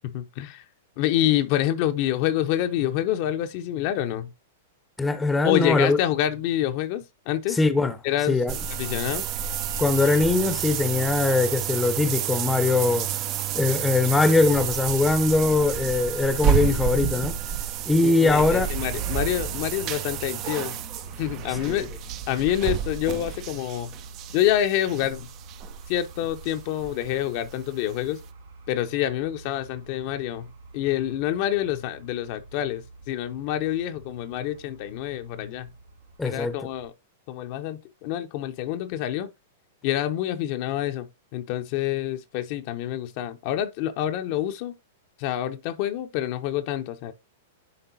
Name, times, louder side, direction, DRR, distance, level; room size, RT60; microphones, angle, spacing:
voice 1, 0.0-0.6 1.0-4.3 5.4-7.6 8.0-8.4 8.8-9.2 18.0-20.8 21.2-21.9 22.3-23.9 24.3-25.3 25.9-28.2 28.7-35.7 36.2-36.9 37.3-39.3 39.8-44.7 45.2-47.1, left 12 dB, 50° left, 0.7 m, -27 dB
voice 2, 5.0-6.0 7.5-8.0 8.3-8.6 9.8-13.1 13.5-17.4 17.9-18.7 21.7-21.9 36.2-36.6, left 3 dB, 10° left, 0.8 m, -21 dB
sound 1, 8.5-27.2 27.5-27.6 28.1-28.2, right 10 dB, 40° right, 0.6 m, -30 dB
sound 2, 17.9-36.9, right 3 dB, 80° right, 1.8 m, -46 dB
10.5 x 3.7 x 2.7 m
hypercardioid pair, 110°, 0 cm